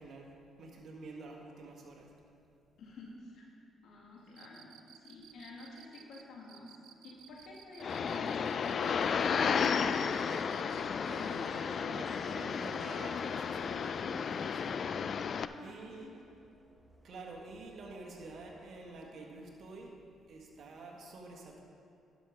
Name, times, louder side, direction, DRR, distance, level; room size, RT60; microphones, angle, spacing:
voice 1, 0.0-2.1 9.9-10.5 11.0-15.1 15.6-16.2 17.0-20.0 20.3-21.6, right 2 dB, 60° right, 0 dB, 1.6 m, -49 dB
voice 2, 2.8-3.5 3.8-6.7 7.0-8.6 9.3-10.2 15.3-16.2, left 2 dB, 70° left, -2 dB, 2.1 m, -49 dB
Cricket, 4.3-10.9, right 11 dB, 80° right, 0.4 m, -56 dB
sound 1, 7.8-15.5, left 6 dB, 55° left, 0.3 m, -33 dB
sound 2, 9.5-19.8, equal, 5° right, 1.2 m, -55 dB
11.0 x 6.4 x 5.3 m, 2.5 s
cardioid pair, 80°, 0 cm